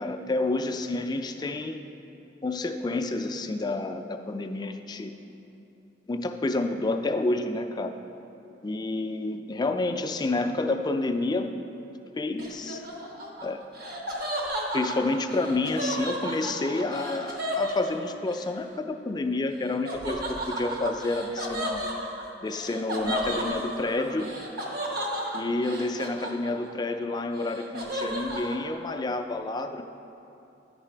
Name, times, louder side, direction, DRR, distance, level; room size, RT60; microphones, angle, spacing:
voice 1, 0.0-1.8 2.4-5.1 6.1-7.9 8.6-11.5 12.2-12.8 13.4-13.6 14.7-21.8 22.4-24.3 25.3-29.8, left 2 dB, 25° left, 7 dB, 0.3 m, -29 dB
Laughter, 12.4-18.4 19.8-26.8 27.1-28.6, equal, 60° right, 1.0 m, -33 dB
10.0 x 4.8 x 4.4 m, 2.9 s
head